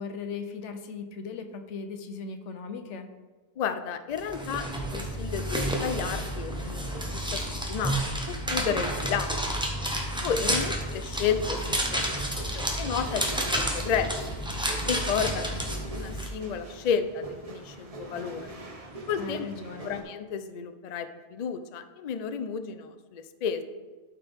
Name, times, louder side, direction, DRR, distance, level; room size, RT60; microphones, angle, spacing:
voice 1, 0.0-3.1 10.5-10.6 15.1-15.6 19.2-20.0, left 4 dB, 80° left, 7 dB, 1.0 m, -38 dB
voice 2, 3.6-7.4 7.7-9.4 10.2-12.3 12.5-13.2 13.5-14.1 14.9-15.4 15.9-18.5 19.1-19.5 19.8-23.6, left 7 dB, 55° left, 9 dB, 0.4 m, -32 dB
sound 1, 4.2-16.3, equal, 5° right, 0.8 m, -30 dB
sound 2, 11.3-20.0, right 2 dB, 35° right, 0.9 m, -43 dB
12.0 x 4.5 x 3.5 m, 1.3 s
omnidirectional pair, 1.2 m